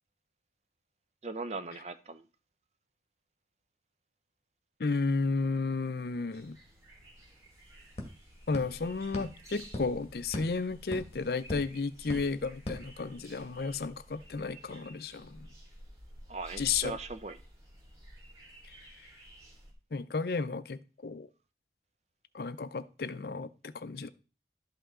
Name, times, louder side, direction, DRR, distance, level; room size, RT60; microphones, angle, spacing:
voice 1, 1.2-2.2 16.3-17.4, right 3 dB, 35° right, 0.6 m, -39 dB
voice 2, 4.8-6.6 8.5-15.5 16.6-17.0 19.9-21.3 22.3-24.1, left 4 dB, 60° left, 0.5 m, -33 dB
sound 1, 6.3-19.7, right 1 dB, 20° right, 2.7 m, -52 dB
sound 2, 6.8-6.9 7.2-13.6, left 1 dB, 35° left, 1.8 m, -44 dB
12.0 x 5.6 x 3.7 m
head